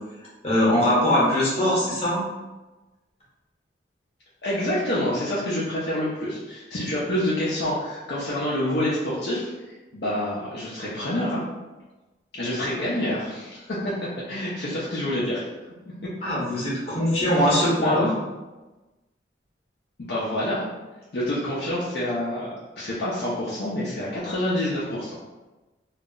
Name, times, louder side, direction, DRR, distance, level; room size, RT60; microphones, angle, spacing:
voice 1, 0.4-2.2 16.2-18.1, equal, 35° left, -6 dB, 0.9 m, -21 dB
voice 2, 4.4-11.4 12.3-15.4 17.3-18.1 20.0-20.7 21.1-22.5 22.8-25.2, left 1 dB, 55° left, -8 dB, 0.5 m, -27 dB
2.3 x 2.0 x 3.6 m, 1.1 s
head